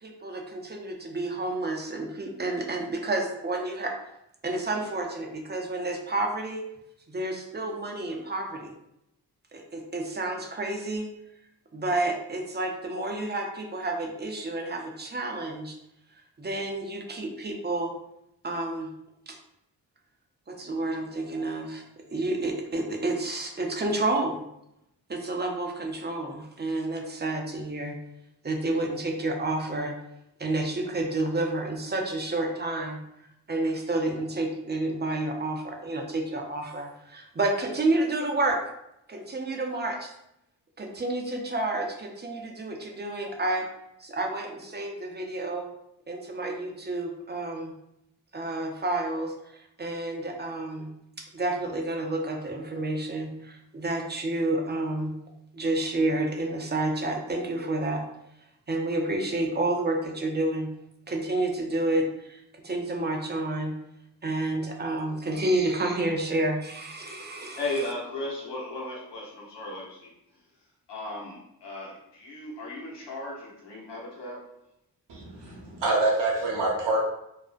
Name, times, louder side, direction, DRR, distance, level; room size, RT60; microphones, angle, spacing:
voice 1, 0.0-3.9 4.4-6.6 7.1-8.7 9.5-11.1 11.7-15.7 16.4-17.9 18.4-18.9 19.3-19.4 20.5-24.4 25.1-28.0 28.4-29.9 30.4-33.0 33.5-38.6 39.1-40.1 40.8-43.7 44.0-45.7 46.1-47.7 48.3-50.9 51.3-55.1 55.5-58.0 58.7-60.7 61.1-63.7 64.2-67.6, right 2 dB, 25° right, 2 dB, 0.5 m, -30 dB
voice 2, 67.6-70.1 70.9-74.5, left 2 dB, 80° left, -4 dB, 0.9 m, -36 dB
voice 3, 75.1-77.0, right 2 dB, 80° right, -2 dB, 0.8 m, -26 dB
2.4 x 2.1 x 2.4 m, 0.81 s
cardioid pair, 50°, 42 cm